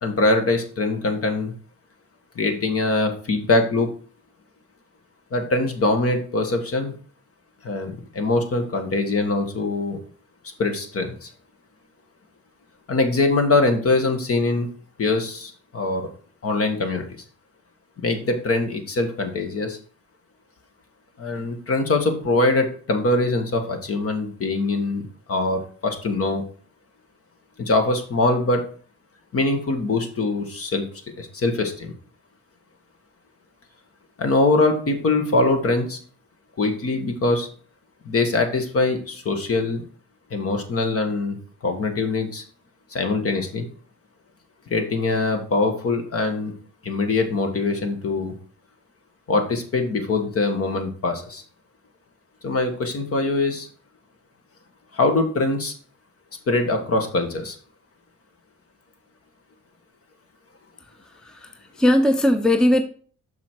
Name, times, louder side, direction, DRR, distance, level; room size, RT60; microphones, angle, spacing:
voice 1, 0.0-1.5 2.4-3.9 5.3-6.9 7.6-10.0 10.6-11.3 12.9-14.7 15.0-16.1 16.4-17.2 18.0-19.8 21.2-25.0 25.3-26.4 27.6-28.6 29.3-30.9 31.2-32.0 34.2-36.0 36.6-37.5 38.1-39.8 40.3-41.4 41.6-42.4 42.9-43.7 44.7-46.5 46.8-48.3 49.3-51.4 52.4-53.7 54.9-55.7 56.5-57.6, left 2 dB, 50° left, 6 dB, 1.6 m, -23 dB
voice 2, 60.8-62.8, left 1 dB, ahead, 8 dB, 0.7 m, -20 dB
6.2 x 5.6 x 4.6 m, 0.44 s
cardioid pair, 90°, 30 cm